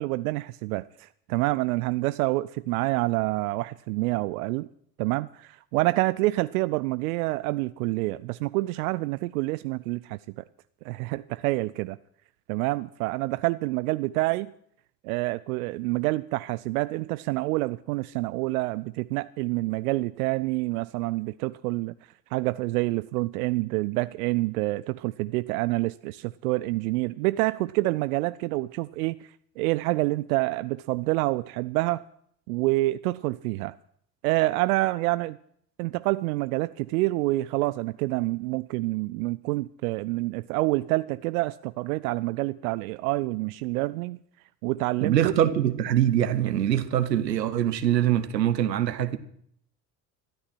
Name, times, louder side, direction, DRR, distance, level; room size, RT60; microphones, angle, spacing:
voice 1, 0.0-4.7 5.0-10.2 10.8-12.0 12.5-14.5 15.0-21.9 22.3-29.2 29.6-32.0 32.5-33.7 34.2-35.4 35.8-44.2 44.6-45.2, right 20 dB, 60° right, 0.5 m, -27 dB
voice 2, 45.0-49.2, right 11 dB, 80° right, 1.1 m, -23 dB
13.5 x 12.5 x 6.1 m
figure-of-eight pair, 65°, 49 cm